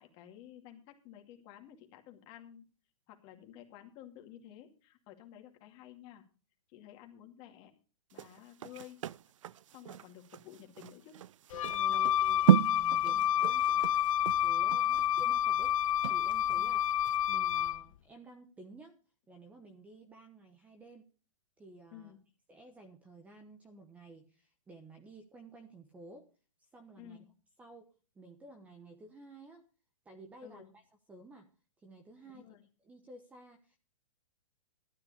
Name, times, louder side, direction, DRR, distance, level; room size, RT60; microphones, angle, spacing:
voice 1, 0.0-2.7 3.1-6.2 6.7-7.7 8.1-9.0 9.7-11.2 11.9-12.0 13.0-13.3 14.7-15.0 16.6-16.8 21.9-22.2 27.0-27.3 30.4-30.7 32.2-32.6, left 11 dB, 30° left, 4 dB, 2.4 m, -53 dB
sound 1, 8.1-16.7 17.0-17.2, right 11 dB, 70° right, 0.5 m, -32 dB
Wind instrument woodwind instrument, 11.5-17.8, left 11 dB, 80° left, 0.5 m, -29 dB
voice 2, 11.7-15.7 16.1-16.9 17.3-19.0 19.3-21.0 21.6-22.1 22.5-26.3 26.7-27.3 27.6-27.9 28.1-29.7 30.0-30.8 31.1-31.5 31.8-32.5 32.8-33.8, right 2 dB, 10° right, 6 dB, 1.2 m, -53 dB
13.0 x 9.5 x 5.1 m, 0.37 s
hypercardioid pair, 160°, 17 cm